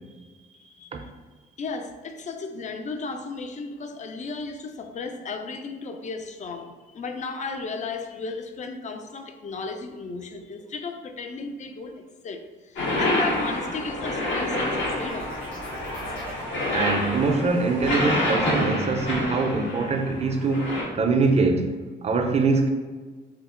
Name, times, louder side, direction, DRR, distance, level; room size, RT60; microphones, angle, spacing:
voice 1, 1.6-15.2, left 4 dB, 35° left, 6 dB, 0.4 m, -34 dB
sound 1, 12.8-20.8, left 1 dB, 70° left, 1.0 m, -28 dB
sound 2, 14.8-20.4 20.8-21.2, right 1 dB, 85° left, 1.2 m, -43 dB
voice 2, 16.7-21.8 22.0-22.7, right 3 dB, 35° right, 4 dB, 0.4 m, -23 dB
2.8 x 2.0 x 3.6 m, 1.4 s
cardioid pair, 90°, 20 cm